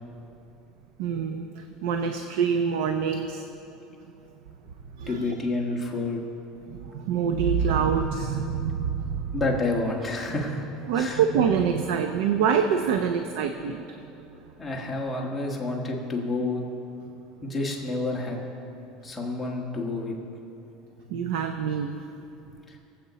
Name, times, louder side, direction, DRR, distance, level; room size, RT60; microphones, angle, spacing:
voice 1, 1.0-3.5 5.0-5.3 6.7-9.3 10.9-13.9 21.1-21.9, right 7 dB, 80° right, 6 dB, 0.7 m, -25 dB
voice 2, 5.1-6.2 9.3-10.6 10.9-11.2 14.6-16.6 17.4-18.4 19.0-20.1 22.7-22.8, left 2 dB, 10° left, -2 dB, 1.5 m, -29 dB
24.0 x 8.0 x 4.1 m, 2.9 s
cardioid pair, 160°, 0 cm